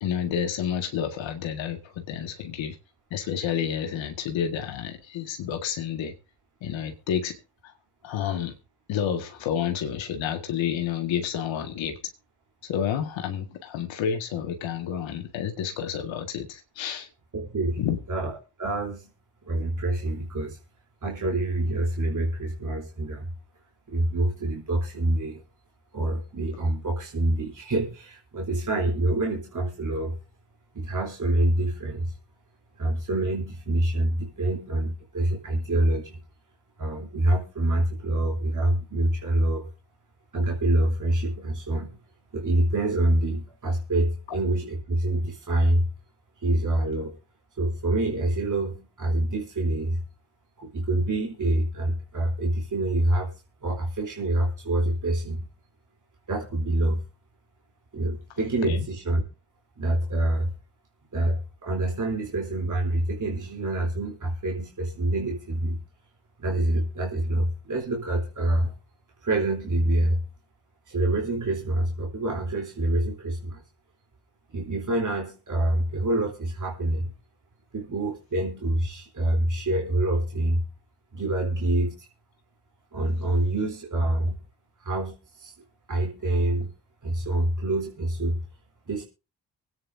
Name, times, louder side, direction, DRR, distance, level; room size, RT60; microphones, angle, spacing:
voice 1, 0.0-2.8 3.1-6.1 6.6-7.4 7.6-7.7 8.0-8.5 8.9-12.0 12.6-17.1 17.8-18.0 44.3-44.4 58.6-58.9, left 8 dB, 80° left, 1.8 m, -30 dB
voice 2, 17.3-17.8 18.1-18.3 18.6-19.1 19.5-20.6 21.0-23.3 23.9-25.4 25.9-30.2 30.7-32.1 32.8-36.2 36.8-39.7 40.3-42.0 42.3-45.9 46.4-47.1 47.6-50.0 50.6-53.3 53.6-55.5 56.3-57.0 57.9-59.2 59.8-60.5 61.1-65.8 66.4-68.7 69.2-70.3 70.9-73.6 74.5-77.1 77.7-80.6 81.1-82.1 82.9-84.4 84.8-85.5 85.9-86.7 87.0-88.4 88.9-89.0, right 1 dB, 40° right, 3.5 m, -26 dB
24.5 x 9.4 x 2.7 m
hypercardioid pair, 45°, 45 cm